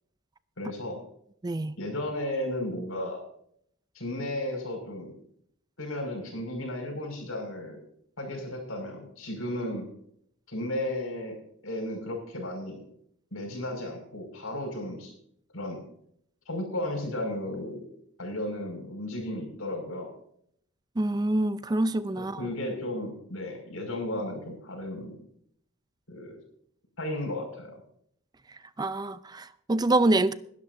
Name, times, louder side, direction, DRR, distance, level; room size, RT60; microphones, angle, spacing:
voice 1, 0.6-1.0 1.8-3.2 3.9-5.1 5.8-7.8 8.2-9.9 10.5-11.3 11.6-12.8 13.3-15.1 15.5-15.8 16.5-17.9 18.2-20.1 22.4-25.2 26.1-26.4 27.0-27.8, left 1 dB, 85° left, 5.8 m, -34 dB
voice 2, 1.4-1.8 21.0-22.4 28.8-30.3, right 2 dB, 20° right, 0.4 m, -26 dB
21.0 x 12.0 x 2.7 m
head